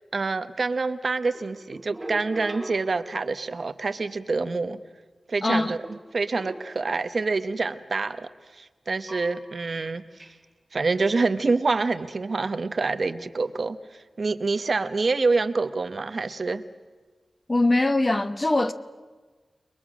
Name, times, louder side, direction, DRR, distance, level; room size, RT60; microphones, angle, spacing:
voice 1, 0.1-4.8 5.3-8.3 8.5-10.0 10.7-16.6, right 3 dB, 55° right, 1.0 m, -26 dB
sound 1, 1.3-3.5 5.8-7.1 9.1-9.7 10.2-10.4, right 1 dB, 20° right, 1.8 m, -40 dB
voice 2, 5.4-5.7 17.5-18.7, left 2 dB, 30° left, 1.1 m, -22 dB
30.0 x 21.0 x 6.2 m
wide cardioid pair, 95°, 0 cm